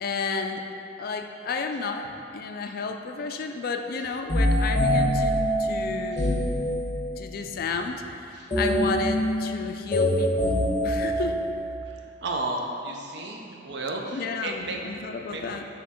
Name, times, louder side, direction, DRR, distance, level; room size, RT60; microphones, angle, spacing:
voice 1, 0.0-0.7 1.0-6.4 7.2-11.4 14.1-15.7, left 4 dB, 50° left, 5 dB, 0.3 m, -32 dB
sound 1, 4.3-7.3 8.5-11.8, equal, 25° left, 1.1 m, -24 dB
voice 2, 8.3-8.6 11.8-15.6, right 2 dB, 60° right, 1 dB, 0.6 m, -34 dB
6.4 x 3.5 x 4.2 m, 2.7 s
head